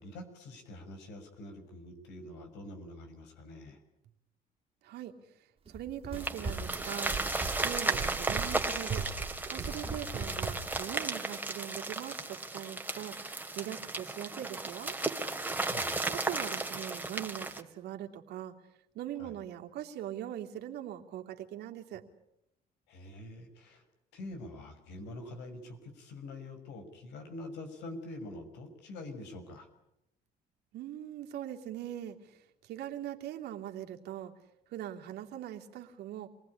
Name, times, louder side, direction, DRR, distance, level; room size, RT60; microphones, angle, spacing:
voice 1, 0.0-3.8 15.6-16.0 19.2-19.3 22.9-23.8 24.1-29.7, left 1 dB, 90° left, 6 dB, 6.2 m, -45 dB
Run, 5.6-10.9, right 4 dB, 35° right, 3.1 m, -39 dB
voice 2, 5.7-7.3 7.6-9.1 9.5-15.0 16.1-18.6 18.9-22.0 30.7-34.3 34.7-36.3, right 11 dB, 75° right, 3 dB, 2.8 m, -41 dB
sound 1, 6.1-17.6, right 2 dB, 10° right, 2.5 m, -35 dB
27.0 x 19.5 x 10.0 m, 0.84 s
cardioid pair, 110°, 17 cm